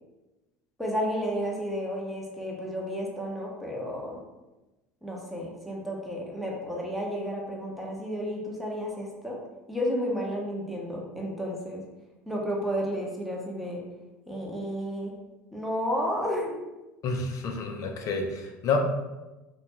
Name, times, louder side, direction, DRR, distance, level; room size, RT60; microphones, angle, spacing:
voice 1, 0.8-4.2 5.0-9.4 9.7-11.8 12.3-13.8 14.3-15.1 15.5-16.6, equal, ahead, -2 dB, 0.7 m, -32 dB
voice 2, 17.0-18.8, left 4 dB, 45° left, 3 dB, 0.5 m, -29 dB
2.4 x 2.2 x 2.9 m, 1.1 s
hypercardioid pair, 75°, 8 cm